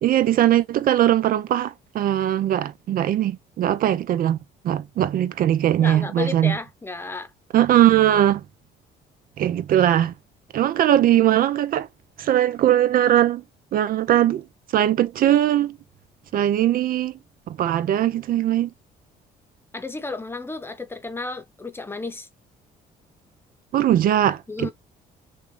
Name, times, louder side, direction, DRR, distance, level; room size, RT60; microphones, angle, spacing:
voice 1, 0.0-4.4 4.6-6.6 7.5-8.4 9.4-10.1 10.5-11.9 12.2-13.4 13.7-14.4 14.7-15.8 16.3-17.1 17.5-18.7 23.7-24.7, right 12 dB, 55° right, 0.6 m, -20 dB
voice 2, 5.8-7.3 19.7-22.3 24.5-24.7, left 3 dB, 15° left, 0.9 m, -32 dB
6.5 x 2.5 x 3.2 m
cardioid pair, 110°, 17 cm